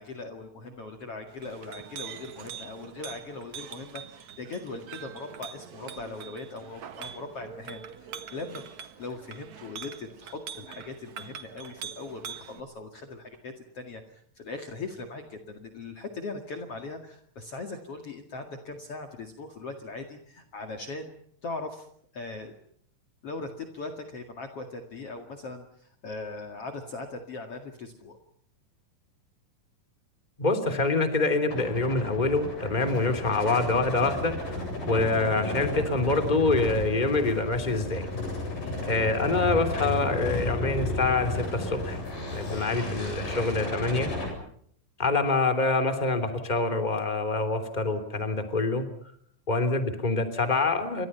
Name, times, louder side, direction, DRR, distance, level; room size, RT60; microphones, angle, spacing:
voice 1, 0.0-8.6 9.0-21.1 21.4-21.9 22.1-22.5 23.2-28.2 38.6-38.9, left 3 dB, 45° left, 5 dB, 2.8 m, -40 dB
Chink clink, 1.3-12.6, right 8 dB, 60° right, 2.7 m, -43 dB
voice 2, 30.4-34.6 34.9-38.1 38.9-42.0 42.3-44.1 45.0-48.8 49.5-51.1, left 3 dB, 15° left, 9 dB, 3.0 m, -26 dB
sound 1, 31.5-44.3, left 2 dB, 90° left, 9.8 m, -33 dB
30.0 x 25.0 x 5.8 m, 0.65 s
omnidirectional pair, 4.0 m